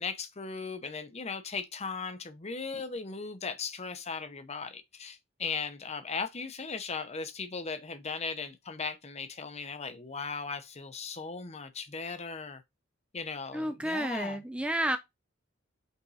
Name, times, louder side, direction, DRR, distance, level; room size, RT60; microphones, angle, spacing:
voice 1, 0.0-12.6 13.1-14.4, left 5 dB, 35° left, 0.8 m, -37 dB
voice 2, 13.5-15.0, right 1 dB, 5° right, 0.4 m, -31 dB
5.5 x 4.4 x 4.0 m
head